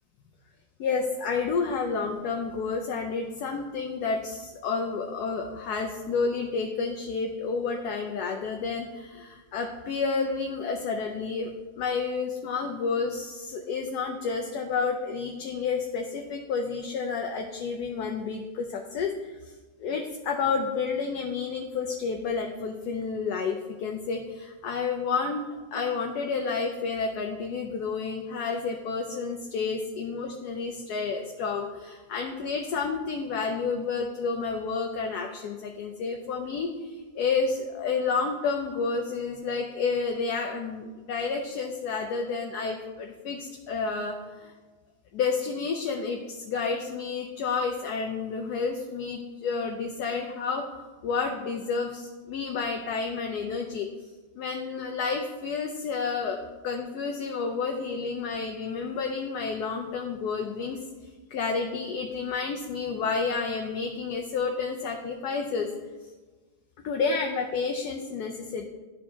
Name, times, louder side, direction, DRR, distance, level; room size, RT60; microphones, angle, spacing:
voice 1, 0.8-11.5 11.8-19.3 19.8-25.4 25.7-44.5 45.1-53.9 54.4-56.4 56.6-60.8 61.3-65.7 66.8-68.6, left 5 dB, 70° left, 3 dB, 1.0 m, -30 dB
12.0 x 4.4 x 2.8 m, 1.3 s
omnidirectional pair, 2.0 m